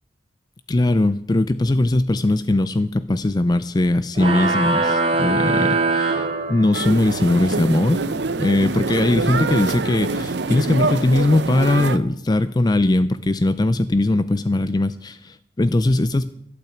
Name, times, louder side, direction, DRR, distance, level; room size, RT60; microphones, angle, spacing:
voice 1, 0.7-8.0 8.4-16.3, left 2 dB, 25° left, 14 dB, 0.4 m, -20 dB
sound 1, 4.2-7.1, right 3 dB, 35° right, 1.6 m, -21 dB
sound 2, 6.7-12.0, right 3 dB, 75° right, 0.7 m, -25 dB
12.0 x 8.8 x 8.4 m, 0.75 s
head